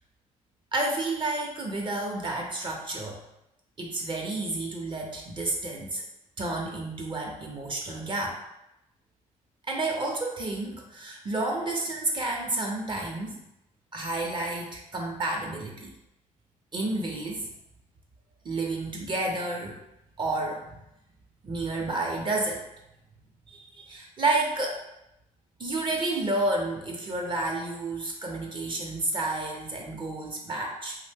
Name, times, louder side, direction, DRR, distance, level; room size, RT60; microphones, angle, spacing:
voice 1, 0.7-3.2 3.8-6.0 6.4-8.4 9.7-13.4 13.9-15.9 16.7-17.5 18.4-19.8 20.2-20.8 21.4-22.6 23.5-24.8 25.6-31.0, right 2 dB, 35° right, 0 dB, 0.5 m, -30 dB
2.6 x 2.0 x 3.3 m, 0.86 s
cardioid pair, 90°, 14 cm